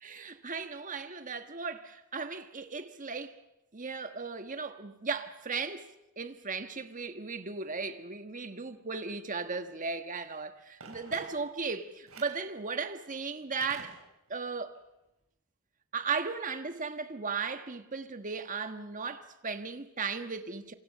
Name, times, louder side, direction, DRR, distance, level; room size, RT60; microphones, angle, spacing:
voice 1, 0.0-3.4 3.7-5.9 6.2-13.9 14.3-14.8 15.9-20.7, right 4 dB, 40° right, 1.4 m, -36 dB
Telephone, 10.8-11.7 12.1-12.5 13.6-14.5 14.7-14.8, right 3 dB, 90° right, 6.8 m, -50 dB
27.0 x 25.5 x 6.7 m
head